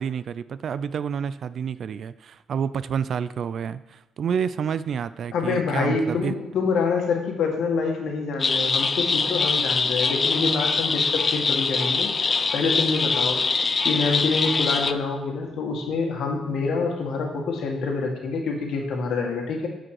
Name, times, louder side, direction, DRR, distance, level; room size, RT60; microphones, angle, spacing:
voice 1, 0.0-6.3, right 7 dB, 60° right, 15 dB, 0.4 m, -29 dB
voice 2, 5.3-13.4 13.8-19.7, left 4 dB, 75° left, 1 dB, 1.9 m, -26 dB
sound 1, 8.4-14.9, left 4 dB, 35° left, 0.5 m, -23 dB
13.0 x 5.1 x 4.9 m, 0.99 s
cardioid pair, 90°, 0 cm